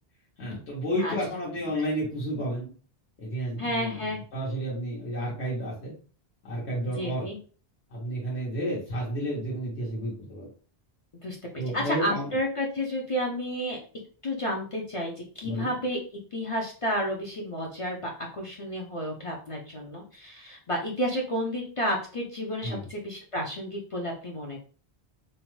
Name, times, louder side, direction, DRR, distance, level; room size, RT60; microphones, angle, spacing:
voice 1, 0.4-2.7 3.2-4.0 4.3-5.9 6.4-7.3 7.9-10.5 11.6-12.3 15.4-15.7 22.6-22.9, equal, 90° left, -6 dB, 1.2 m, -31 dB
voice 2, 3.6-4.2 6.9-7.4 11.2-11.4 11.7-13.8 14.2-16.0 16.3-24.6, equal, 50° left, 0 dB, 0.4 m, -31 dB
2.7 x 2.1 x 3.0 m, 0.40 s
omnidirectional pair, 1.1 m